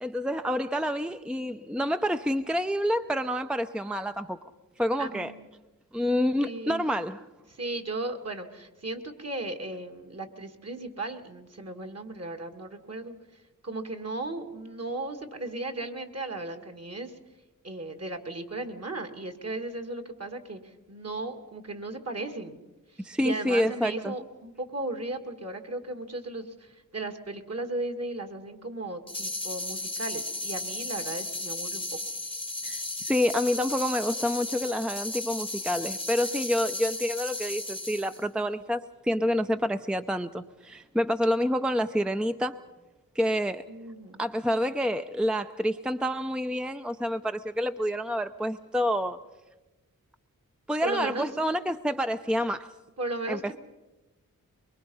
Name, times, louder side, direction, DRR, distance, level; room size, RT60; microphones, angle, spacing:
voice 1, 0.0-4.4 4.8-5.3 5.9-7.3 23.0-24.1 32.6-42.6 43.1-43.6 44.2-49.2 50.7-52.7 53.3-53.6, equal, 5° right, 0.6 m, -28 dB
voice 2, 5.0-5.5 6.4-6.9 7.5-13.1 13.6-17.2 17.6-22.6 22.9-31.8 43.7-44.2 50.8-51.3 53.0-53.6, right 2 dB, 45° right, 2.2 m, -36 dB
sound 1, 29.1-38.2, left 2 dB, 15° left, 1.0 m, -35 dB
23.5 x 22.5 x 5.5 m
cardioid pair, 55°, 34 cm